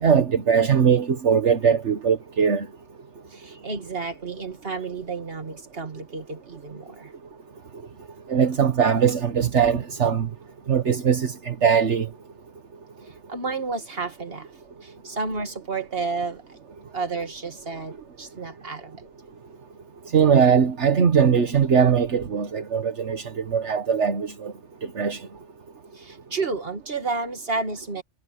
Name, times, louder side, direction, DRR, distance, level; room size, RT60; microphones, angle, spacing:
voice 1, 0.0-2.7 8.3-10.3 10.7-12.1 20.1-24.5 24.9-25.2, right 7 dB, 70° right, 1.6 m, -20 dB
voice 2, 3.3-7.1 13.0-14.5 14.8-16.6 16.9-19.0 25.9-28.0, right 4 dB, 50° right, 2.5 m, -31 dB
omnidirectional pair, 1.3 m